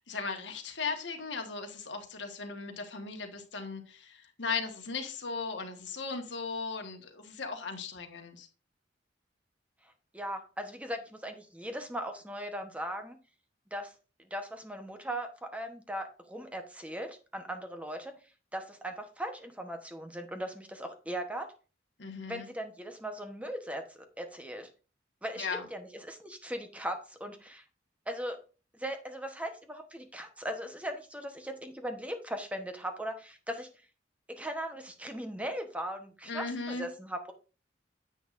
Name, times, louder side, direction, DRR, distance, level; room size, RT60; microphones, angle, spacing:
voice 1, 0.1-8.5 22.0-22.5 25.4-25.7 36.3-36.9, left 4 dB, 70° left, 1.5 m, -37 dB
voice 2, 10.1-13.2 13.7-13.9 14.2-18.1 18.5-21.5 22.3-24.7 25.2-27.6 28.1-28.4 28.7-33.7 34.3-37.3, right 1 dB, 5° right, 1.0 m, -39 dB
9.8 x 7.8 x 2.6 m
head